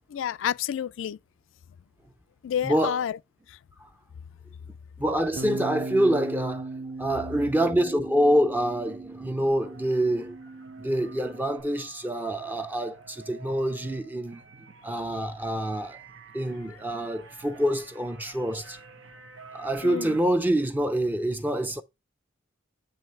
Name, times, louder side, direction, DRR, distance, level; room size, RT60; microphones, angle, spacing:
voice 1, 0.1-1.2 2.4-3.2 3.5-3.6 19.8-20.2, left 9 dB, 80° left, 0.3 m, -29 dB
voice 2, 2.6-3.0 5.0-10.4 10.8-14.4 14.8-16.0 16.3-18.8 19.5-21.8, right 1 dB, 10° right, 0.5 m, -26 dB
Bass guitar, 5.4-11.6, right 3 dB, 65° right, 0.8 m, -38 dB
sound 1, 9.6-20.2, right 4 dB, 85° right, 1.1 m, -49 dB
9.2 x 3.2 x 4.4 m
head